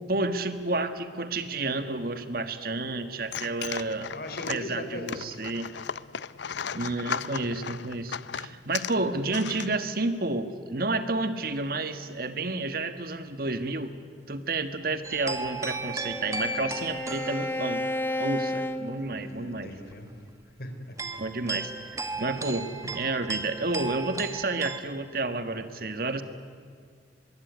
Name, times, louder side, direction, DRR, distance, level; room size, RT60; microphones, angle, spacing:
voice 1, 0.1-4.1 4.5-5.7 6.7-13.9 14.3-17.8 18.2-19.7 21.2-26.2, right 2 dB, 55° right, 9 dB, 1.6 m, -30 dB
sound 1, 3.2-10.1, left 7 dB, 80° left, 0.7 m, -36 dB
voice 2, 4.1-5.3 19.2-20.3 20.6-21.3 21.5-21.6, left 1 dB, 60° left, 6 dB, 3.7 m, -39 dB
sound 2, 15.0-18.7 19.0-19.1 19.7-19.9 20.3-20.4 21.0-24.8, right 3 dB, 20° right, 1.5 m, -36 dB
Bowed string instrument, 15.4-19.7, left 1 dB, 10° left, 0.9 m, -33 dB
24.5 x 22.5 x 9.6 m, 2.1 s
head